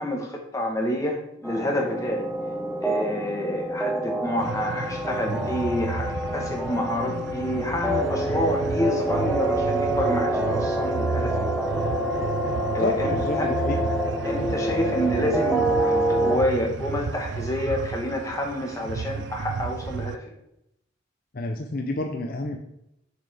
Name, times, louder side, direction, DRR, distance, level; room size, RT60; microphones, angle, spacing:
voice 1, 0.0-2.3 2.8-11.5 12.7-13.6 14.2-20.2, equal, 15° left, 1 dB, 1.2 m, -28 dB
sound 1, 1.4-16.4, right 1 dB, ahead, 0.7 m, -27 dB
sound 2, 4.4-20.2, right 5 dB, 60° right, 0.4 m, -32 dB
voice 2, 12.8-13.8 21.3-22.6, left 2 dB, 50° left, 3 dB, 0.6 m, -29 dB
7.1 x 5.9 x 3.4 m, 0.81 s
head